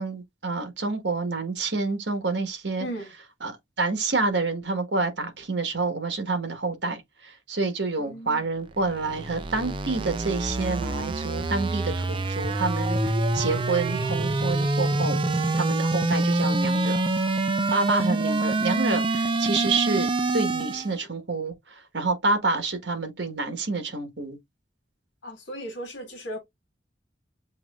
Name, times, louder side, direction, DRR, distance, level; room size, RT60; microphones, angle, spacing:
voice 1, 0.0-2.9 3.4-15.2 15.5-17.0 17.7-24.4, right 3 dB, 65° right, 1.3 m, -28 dB
voice 2, 2.8-3.1 8.0-8.5 25.2-26.4, right 1 dB, 80° left, 1.8 m, -36 dB
sound 1, 8.7-20.9, right 2 dB, 25° right, 0.4 m, -26 dB
7.3 x 3.0 x 2.4 m
head